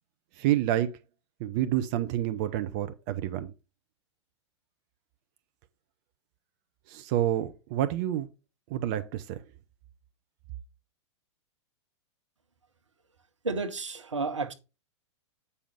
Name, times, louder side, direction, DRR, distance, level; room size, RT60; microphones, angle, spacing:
voice 1, 0.4-0.9 1.4-3.5 6.9-8.3 8.7-9.4, right 12 dB, 40° right, 0.7 m, -28 dB
voice 2, 13.4-14.5, right 3 dB, 75° right, 1.2 m, -31 dB
8.5 x 5.6 x 3.6 m
figure-of-eight pair, 100°, 16 cm